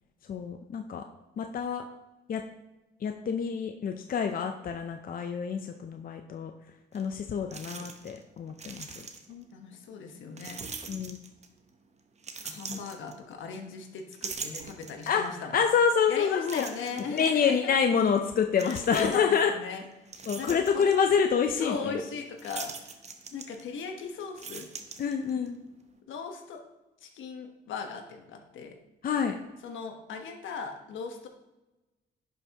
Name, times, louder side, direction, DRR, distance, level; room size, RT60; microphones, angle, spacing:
voice 1, 0.3-1.0 1.4-1.8 2.3-2.4 3.0-6.5 6.9-8.9 10.9-11.2 12.7-12.8 15.1-15.2 15.5-16.6 17.0-19.5 20.3-22.0 25.0-25.6 29.0-29.3, left 6 dB, 45° left, 5 dB, 0.6 m, -27 dB
sound 1, 6.9-7.0 7.5-8.2 8.5-9.4 10.4-11.6 12.2-13.6 14.0-15.3 15.8-15.9 16.5-17.3 18.5-19.4 19.8-21.0 22.4-23.9 24.2-25.5, right 4 dB, 35° right, 0.9 m, -42 dB
voice 2, 9.3-10.6 12.4-15.6 16.1-17.6 18.6-19.8 20.4-20.8 21.6-22.7 23.3-24.7 26.1-26.6 27.0-28.8 29.6-31.3, left 5 dB, 75° left, 4 dB, 1.3 m, -38 dB
11.0 x 5.5 x 3.0 m, 1.0 s
cardioid pair, 90°, 20 cm